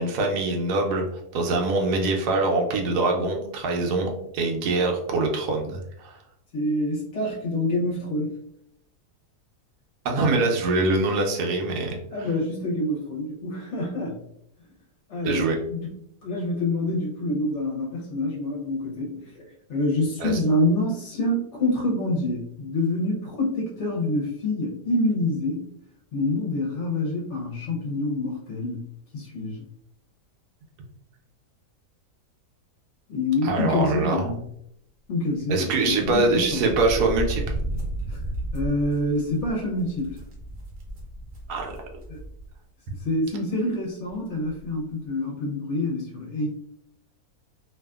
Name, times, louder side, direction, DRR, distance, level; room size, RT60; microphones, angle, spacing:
voice 1, 0.0-6.2 10.0-12.3 15.2-15.6 20.2-20.4 33.4-34.3 35.5-37.4 41.5-41.7, right 3 dB, 80° right, 1 dB, 1.1 m, -24 dB
voice 2, 6.5-8.4 12.1-14.2 15.1-15.9 16.2-25.7 26.1-28.8 29.1-29.6 33.1-34.4 35.1-36.7 38.1-38.2 38.5-40.2 42.1-42.2 42.9-46.5, left 1 dB, 60° left, -4 dB, 0.9 m, -27 dB
sound 1, 35.8-42.5 42.9-43.0 44.1-44.2 44.4-44.7, right 1 dB, 50° right, 0.7 m, -33 dB
2.7 x 2.4 x 2.3 m, 0.74 s
omnidirectional pair, 1.7 m